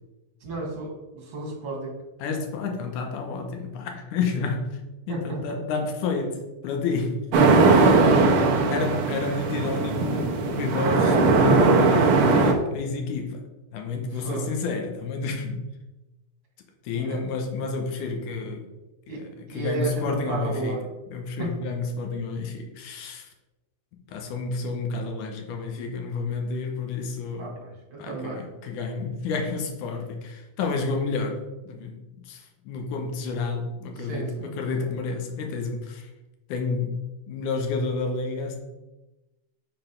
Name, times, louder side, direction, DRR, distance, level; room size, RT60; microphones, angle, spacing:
voice 1, 0.4-2.0 5.1-5.6 8.0-9.0 14.1-14.5 16.9-17.2 19.1-20.8 21.4-21.6 27.4-28.5 34.0-34.9, right 3 dB, 50° right, -2 dB, 2.5 m, -33 dB
voice 2, 2.2-4.7 5.1-7.2 8.7-13.4 13.7-15.6 16.8-18.6 19.1-19.2 19.5-20.8 21.1-23.3 24.1-27.5 28.0-31.4 31.7-36.1 36.5-37.0 37.3-38.6, left 4 dB, 80° left, 3 dB, 2.4 m, -30 dB
sound 1, 7.3-12.5, right 3 dB, 90° right, 1.1 m, -19 dB
6.7 x 4.0 x 5.2 m, 1.1 s
omnidirectional pair, 3.6 m